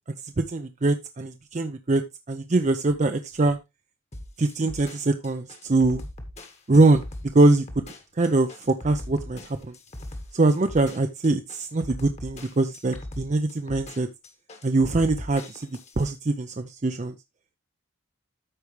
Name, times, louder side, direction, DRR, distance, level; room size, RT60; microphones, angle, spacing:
voice 1, 0.2-3.6 4.4-6.0 6.7-9.8 10.3-14.1 14.6-15.7 16.0-17.1, right 2 dB, 35° right, 7 dB, 0.5 m, -23 dB
sound 1, 4.1-16.1, left 1 dB, 30° left, 1.3 m, -40 dB
13.5 x 4.8 x 3.2 m, 0.22 s
head